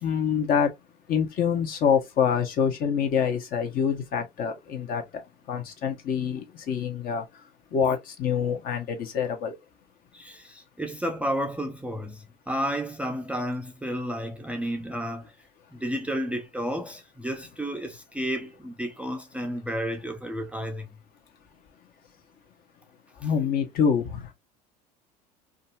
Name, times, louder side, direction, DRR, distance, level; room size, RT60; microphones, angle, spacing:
voice 1, 0.0-0.7 1.1-5.2 5.5-7.2 7.7-9.6 23.2-24.3, left 7 dB, 50° left, 0.8 m, -26 dB
voice 2, 10.1-15.4 15.7-21.0, equal, 5° right, 0.4 m, -32 dB
2.6 x 2.3 x 2.3 m
hypercardioid pair, 75°, 20 cm